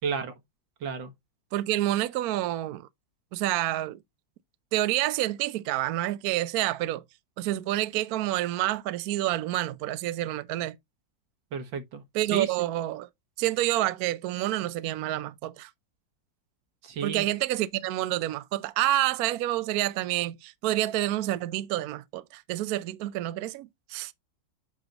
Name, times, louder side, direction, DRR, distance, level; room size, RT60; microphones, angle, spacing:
voice 1, 0.0-0.3 0.8-1.1 11.5-12.0 12.3-12.5 16.8-17.3, right 6 dB, 90° right, 2.0 m, -31 dB
voice 2, 1.5-2.9 3.3-4.0 4.7-7.0 7.4-10.8 12.1-13.1 13.4-15.7 17.0-24.1, right 15 dB, 70° right, 0.9 m, -28 dB
7.9 x 5.2 x 2.9 m
omnidirectional pair, 2.0 m